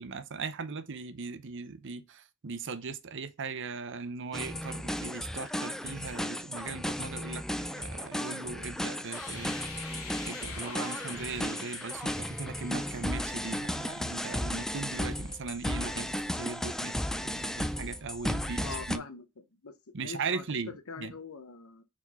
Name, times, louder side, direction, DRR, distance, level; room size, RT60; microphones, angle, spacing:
voice 1, 0.0-9.5 10.2-16.1 16.4-19.0 19.9-21.1, right 4 dB, 60° right, 0.8 m, -39 dB
sound 1, 4.3-19.0, equal, ahead, 0.4 m, -35 dB
sound 2, 9.1-15.9, left 4 dB, 90° left, 1.4 m, -47 dB
voice 2, 18.6-19.3 19.6-21.8, left 4 dB, 75° left, 0.8 m, -44 dB
4.7 x 4.4 x 5.6 m
head